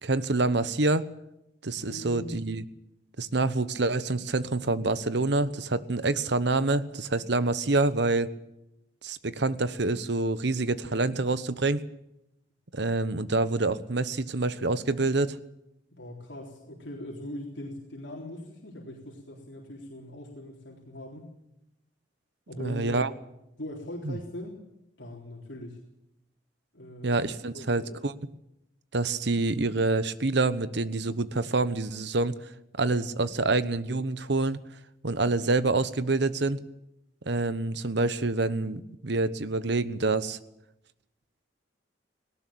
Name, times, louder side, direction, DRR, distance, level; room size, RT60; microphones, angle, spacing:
voice 1, 0.0-1.1 1.6-2.6 3.2-8.3 9.0-11.8 12.7-15.4 22.6-23.1 24.0-24.2 27.0-28.1 28.9-32.4 32.8-34.6 35.0-36.6 37.3-40.4, right 3 dB, 65° right, 14 dB, 1.1 m, -27 dB
voice 2, 1.7-2.3 15.9-21.3 22.5-23.0 23.6-24.6 25.0-25.8 26.7-27.2 27.5-28.0, left 1 dB, 75° left, -1 dB, 3.8 m, -41 dB
18.5 x 18.0 x 8.7 m, 0.85 s
head